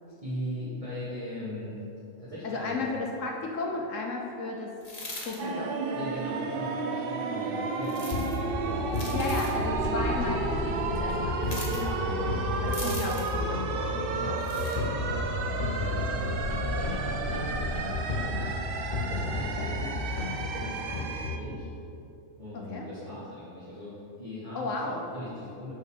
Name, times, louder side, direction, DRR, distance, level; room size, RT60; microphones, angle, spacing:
voice 1, 0.2-1.8 2.2-2.8 5.9-8.9 9.7-10.1 11.7-12.9 13.9-21.7 22.4-25.7, left 1 dB, 25° right, -12 dB, 1.9 m, -40 dB
voice 2, 2.4-4.7 5.2-5.7 9.1-11.5 12.6-13.7 19.6-19.7 22.5-22.9 24.5-25.0, left 3 dB, 75° left, 0 dB, 1.1 m, -34 dB
sound 1, 4.8-5.4 7.8-8.4 8.9-9.6 11.4-11.8 12.7-13.4 14.4-14.8, left 2 dB, 30° left, 1.4 m, -40 dB
sound 2, 5.4-21.4, right 4 dB, 55° right, 0.6 m, -33 dB
sound 3, 8.1-21.4, left 2 dB, 45° left, 0.8 m, -33 dB
6.5 x 5.1 x 6.5 m, 2.7 s
omnidirectional pair, 1.3 m